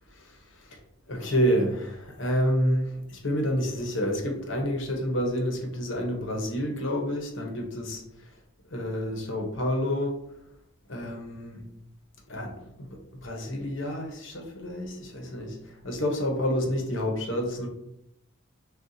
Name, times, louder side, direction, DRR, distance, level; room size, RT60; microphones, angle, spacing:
voice 1, 1.1-8.0 8.7-10.2 10.9-11.6 12.3-12.9 13.2-15.6 15.8-17.7, equal, 60° left, 1 dB, 0.9 m, -28 dB
6.3 x 2.4 x 2.7 m, 0.80 s
head